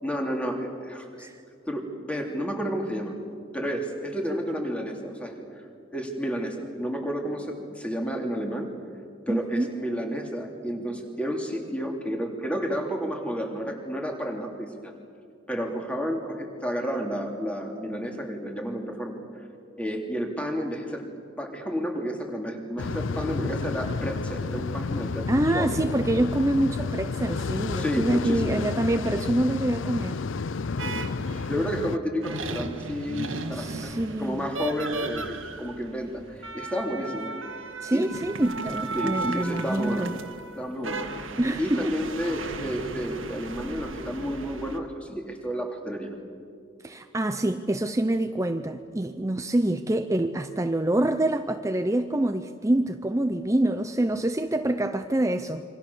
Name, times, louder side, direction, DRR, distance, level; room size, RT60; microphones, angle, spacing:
voice 1, 0.0-1.3 1.6-3.2 3.5-5.5 5.9-8.7 9.3-14.9 15.5-19.2 19.8-21.1 21.4-25.8 27.8-28.7 30.8-31.2 31.4-37.3 37.9-38.1 38.9-40.1 40.6-41.1 41.6-46.1, equal, 5° left, 1 dB, 3.0 m, -31 dB
voice 2, 9.3-9.7 25.3-30.2 33.5-34.5 37.8-40.1 41.4-41.9 46.8-55.6, right 1 dB, 15° right, 8 dB, 0.6 m, -26 dB
sound 1, 22.8-32.0, left 4 dB, 75° left, 0.6 m, -31 dB
sound 2, 30.8-31.6 32.2-44.8, right 2 dB, 85° right, 1.9 m, -36 dB
27.5 x 25.5 x 7.1 m, 2.3 s
head